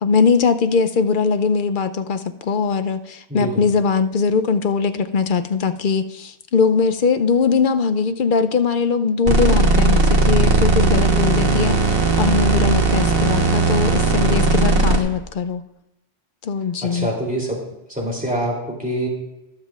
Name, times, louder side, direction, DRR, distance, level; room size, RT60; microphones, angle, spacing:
voice 1, 0.0-15.6 16.4-17.1, left 5 dB, 60° left, 10 dB, 0.6 m, -20 dB
voice 2, 3.3-3.6 16.8-17.6 17.9-19.1, right 1 dB, 5° right, -3 dB, 2.8 m, -25 dB
sound 1, 9.3-15.0, right 3 dB, 60° right, 1.3 m, -17 dB
21.5 x 7.4 x 2.4 m, 0.92 s
omnidirectional pair, 1.1 m